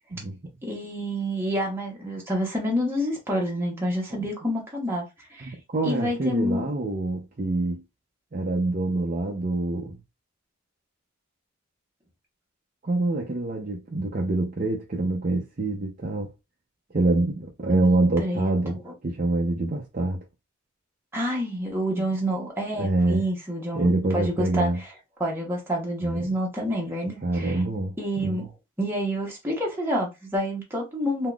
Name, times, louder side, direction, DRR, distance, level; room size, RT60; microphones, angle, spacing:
voice 1, 0.6-5.0 5.3-5.5 5.8-6.6 17.7-18.5 18.8-18.9 21.1-24.7 25.2-27.6 28.0-28.5 28.8-31.3, equal, 10° right, 0.9 m, -28 dB
voice 2, 5.4-7.8 8.3-10.0 12.8-16.3 16.9-20.2 22.0-22.1 22.8-23.3 23.7-24.8 26.0-26.2 27.2-27.9 28.2-28.5, right 2 dB, 40° right, 0.6 m, -26 dB
3.7 x 2.8 x 2.3 m
head